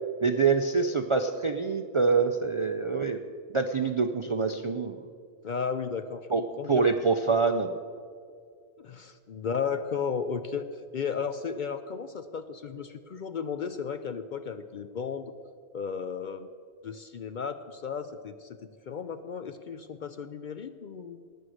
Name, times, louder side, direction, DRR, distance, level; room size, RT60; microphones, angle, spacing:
voice 1, 0.2-3.2 3.5-5.0 6.3-6.4 6.7-7.7, right 4 dB, 50° right, 7 dB, 0.3 m, -25 dB
voice 2, 5.4-6.9 8.8-15.3 15.7-16.5 16.8-21.2, left 6 dB, 55° left, 10 dB, 0.5 m, -34 dB
18.5 x 6.4 x 6.4 m, 2.2 s
omnidirectional pair, 1.2 m